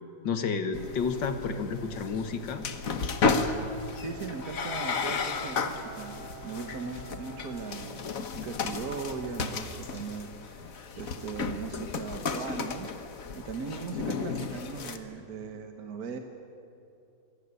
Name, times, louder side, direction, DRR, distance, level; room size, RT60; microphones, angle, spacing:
voice 1, 0.2-2.6, left 5 dB, 70° left, 8 dB, 2.2 m, -31 dB
sound 1, 0.7-15.0, left 4 dB, 50° left, 1.6 m, -33 dB
Bowed string instrument, 3.9-8.7, right 5 dB, 25° right, 1.7 m, -47 dB
voice 2, 4.0-6.2 6.4-12.9 13.3-16.2, right 5 dB, 55° right, 6 dB, 1.7 m, -39 dB
26.5 x 17.5 x 9.8 m, 2.7 s
omnidirectional pair, 2.1 m